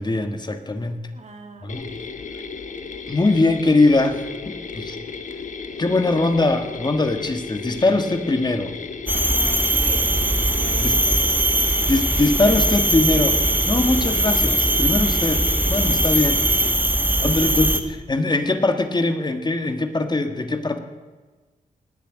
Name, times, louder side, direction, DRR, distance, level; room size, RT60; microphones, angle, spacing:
voice 1, 0.0-1.1 1.6-1.9 3.1-5.0 5.8-8.7 10.8-11.0 11.9-13.4 13.7-15.4 15.7-16.5 17.2-17.7 18.1-20.8, left 2 dB, 30° left, 7 dB, 1.5 m, -21 dB
voice 2, 1.1-2.0 9.4-10.3 10.6-11.3 17.2-17.9, right 3 dB, 50° right, 6 dB, 1.9 m, -39 dB
Mechanisms, 1.7-16.7, left 5 dB, 55° left, 1.3 m, -35 dB
sound 1, 9.1-17.8, right 1 dB, 15° right, 1.4 m, -20 dB
18.5 x 6.8 x 9.0 m, 1.3 s
cardioid pair, 75°, 15 cm